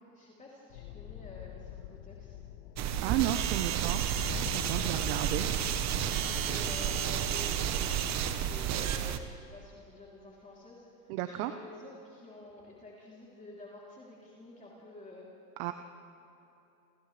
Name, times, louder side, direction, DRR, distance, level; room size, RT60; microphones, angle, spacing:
voice 1, 0.1-2.4 4.8-5.7 6.1-15.3, left 2 dB, 15° left, -5 dB, 3.3 m, -50 dB
sound 1, 0.7-8.6, left 12 dB, 65° left, 1.1 m, -45 dB
sound 2, 2.8-9.2, right 9 dB, 35° right, 1.2 m, -31 dB
voice 2, 3.0-4.0 4.5-5.5 11.1-11.5 15.6-15.7, right 13 dB, 60° right, 8 dB, 1.0 m, -33 dB
28.5 x 26.5 x 3.4 m, 3.0 s
supercardioid pair, 125°, 48 cm